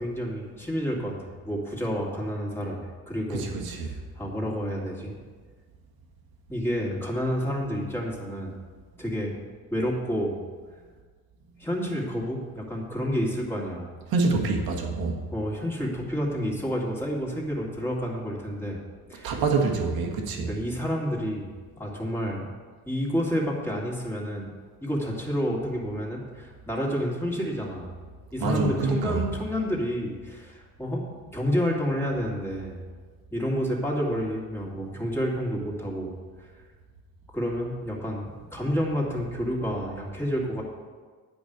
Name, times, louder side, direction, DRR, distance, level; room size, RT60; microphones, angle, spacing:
voice 1, 0.0-3.5 3.8-5.1 6.5-8.5 8.9-9.4 9.7-10.4 11.6-13.9 15.3-18.8 19.1-19.4 20.4-21.5 21.8-22.5 22.8-24.5 24.8-28.0 28.3-31.1 31.3-32.8 33.3-36.1 36.4-36.5 37.3-40.6, equal, 5° left, -3 dB, 2.2 m, -29 dB
voice 2, 3.3-3.9 14.1-15.2 19.2-20.5 28.4-29.2, right 4 dB, 80° right, 2 dB, 1.7 m, -26 dB
10.5 x 5.5 x 7.9 m, 1.5 s
cardioid pair, 135°, 35 cm